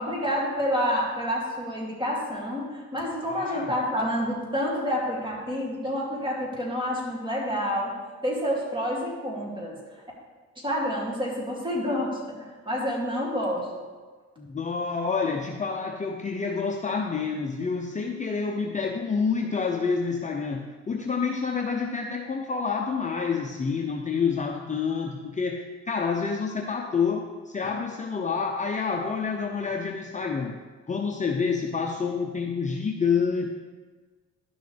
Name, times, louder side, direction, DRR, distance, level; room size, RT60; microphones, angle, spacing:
voice 1, 0.0-7.9 8.2-9.7 10.6-12.1 12.7-13.7, equal, 15° right, -3 dB, 2.6 m, -28 dB
voice 2, 3.3-3.7 14.4-30.5 30.9-33.5, left 5 dB, 25° left, 1 dB, 0.7 m, -28 dB
11.5 x 6.3 x 3.4 m, 1.4 s
cardioid pair, 90°, 30 cm